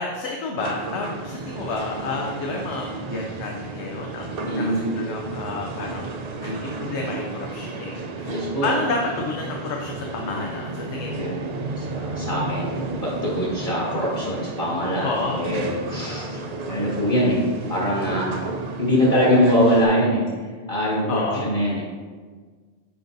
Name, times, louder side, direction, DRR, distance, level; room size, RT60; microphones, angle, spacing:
voice 1, 0.0-11.4 15.0-15.4 21.1-21.5, left 3 dB, 90° left, 0 dB, 0.9 m, -30 dB
sound 1, 0.6-19.9, right 2 dB, 50° right, 0.5 m, -32 dB
voice 2, 4.4-4.9 8.2-8.7 11.2-11.4 11.8-17.4 17.7-18.4 18.8-20.2 20.7-21.8, equal, 50° left, -6 dB, 1.5 m, -23 dB
7.6 x 5.2 x 2.6 m, 1.5 s
omnidirectional pair, 1.1 m